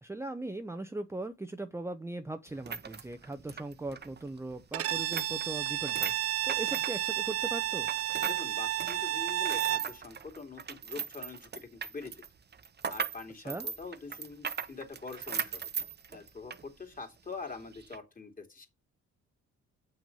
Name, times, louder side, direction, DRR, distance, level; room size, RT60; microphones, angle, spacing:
voice 1, 0.0-7.9 13.4-13.7, right 2 dB, 10° right, 0.7 m, -39 dB
sound 1, 2.5-8.4 8.7-16.7 17.0-17.1 17.7-18.0, right 6 dB, 35° right, 1.0 m, -39 dB
Bowed string instrument, 4.7-9.9, right 13 dB, 55° right, 0.6 m, -31 dB
voice 2, 8.3-12.1 12.9-15.7 16.1-18.7, left 4 dB, 30° left, 2.8 m, -44 dB
7.2 x 6.1 x 5.4 m
cardioid pair, 90°, 30 cm